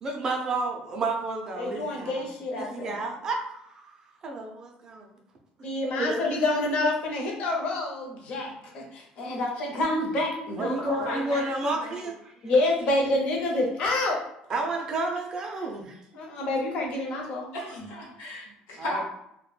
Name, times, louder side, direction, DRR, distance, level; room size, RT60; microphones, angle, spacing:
voice 1, 0.0-2.3 2.5-4.0 4.2-5.1 6.0-6.3 10.6-12.3 14.5-16.0 18.8-19.0, right 2 dB, 25° right, 2 dB, 0.3 m, -31 dB
voice 2, 1.6-3.0 5.6-10.9 11.1-11.2 12.4-14.3 16.1-17.5, left 2 dB, 45° left, -1 dB, 0.6 m, -28 dB
voice 3, 10.8-11.9 17.5-19.0, left 2 dB, 75° left, -2 dB, 0.9 m, -36 dB
2.2 x 2.1 x 3.1 m, 0.77 s
cardioid pair, 175°, 3 cm